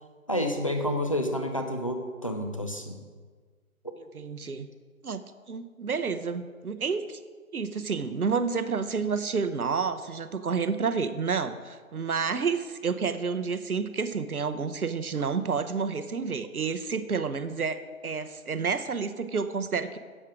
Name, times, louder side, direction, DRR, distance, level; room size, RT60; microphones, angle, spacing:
voice 1, 0.3-3.0, left 1 dB, 25° left, 4 dB, 0.6 m, -29 dB
voice 2, 4.1-4.7 5.0-5.2 5.5-7.2 7.5-20.0, right 5 dB, 85° right, 11 dB, 0.9 m, -30 dB
10.0 x 7.4 x 4.9 m, 1.5 s
figure-of-eight pair, 160°, 43 cm